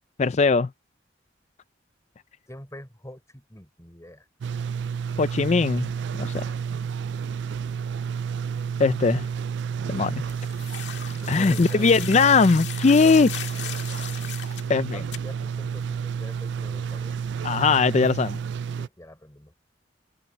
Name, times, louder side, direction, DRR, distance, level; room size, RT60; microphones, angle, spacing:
voice 1, 0.2-0.7 5.2-5.9 6.2-6.4 8.8-9.3 9.9-10.1 11.3-13.3 14.7-15.0 17.4-18.4, left 4 dB, 40° left, 0.4 m, -20 dB
voice 2, 2.5-4.3 11.2-12.4 14.9-17.1 18.8-19.5, left 1 dB, 15° left, 4.5 m, -45 dB
sound 1, 4.4-18.9, right 6 dB, 70° right, 0.3 m, -30 dB
sound 2, 10.3-14.7 15.1-15.2, left 9 dB, 70° left, 1.9 m, -37 dB
head